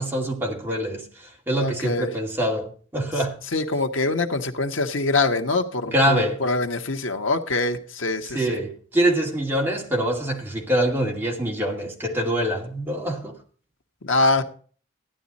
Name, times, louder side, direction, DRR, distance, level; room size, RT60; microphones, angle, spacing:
voice 1, 0.0-3.4 5.9-6.4 8.2-13.4, right 1 dB, 10° right, 2.4 m, -25 dB
voice 2, 1.6-2.1 3.5-8.6 14.0-14.4, left 3 dB, 90° left, 1.3 m, -24 dB
15.0 x 11.0 x 4.2 m
head